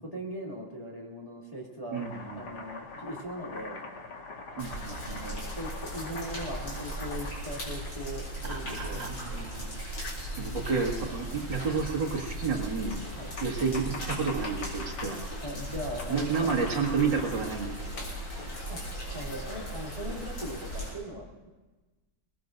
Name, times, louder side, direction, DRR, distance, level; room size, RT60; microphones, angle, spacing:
voice 1, 0.0-2.0 2.3-3.8 5.0-9.1 11.3-11.4 13.1-13.3 15.4-16.5 18.7-18.8 19.1-21.5, equal, 15° left, -5 dB, 2.8 m, -39 dB
Domestic sounds home sounds, 1.9-8.3 10.0-11.2 12.9-15.2 16.0-17.6 18.0-19.8, left 3 dB, 85° left, 2.7 m, -43 dB
voice 2, 1.9-2.4 4.6-5.3 8.7-9.8 10.4-13.0 13.4-15.2 16.1-17.8, right 5 dB, 60° right, -2 dB, 2.7 m, -30 dB
sound 1, 4.6-20.9, right 1 dB, 65° left, 7.2 m, -38 dB
Laughter, 8.4-9.3, right 2 dB, 20° right, 1.8 m, -42 dB
22.5 x 21.5 x 2.6 m, 1.2 s
omnidirectional pair, 2.3 m